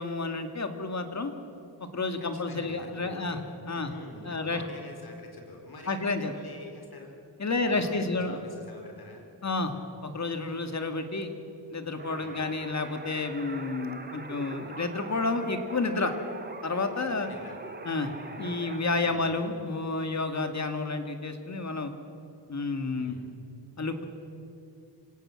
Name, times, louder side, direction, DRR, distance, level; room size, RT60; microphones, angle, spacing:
voice 1, 0.0-1.3 1.8-3.4 3.6-3.9 4.2-4.6 5.9-6.3 7.4-8.4 9.4-9.8 10.0-11.3 11.7-16.1 16.6-17.3 17.8-18.1 18.4-21.9 22.5-23.2 23.8-24.0, left 3 dB, 40° left, 7 dB, 2.2 m, -30 dB
voice 2, 2.2-3.4 3.7-7.1 7.7-9.3 12.2-12.4 17.0-17.5 19.0-19.4 22.9-23.3, left 2 dB, 60° left, 2 dB, 4.4 m, -47 dB
sound 1, 12.0-19.2, right 2 dB, 25° right, 1.9 m, -43 dB
26.0 x 17.5 x 7.7 m, 2.7 s
wide cardioid pair, 95°, 42 cm